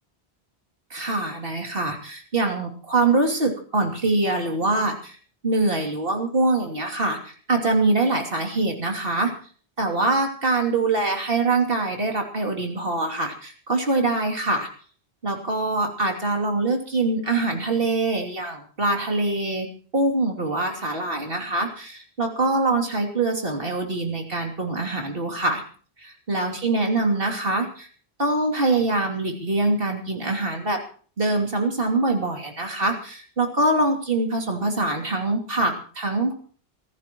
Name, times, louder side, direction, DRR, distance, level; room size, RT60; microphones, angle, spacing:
voice 1, 0.9-5.2 5.4-9.3 9.8-14.7 15.2-19.7 19.9-25.6 26.0-27.9 28.2-30.8 31.2-36.3, right 2 dB, 60° right, 2 dB, 3.2 m, -24 dB
27.0 x 14.5 x 3.1 m, 0.44 s
omnidirectional pair, 1.1 m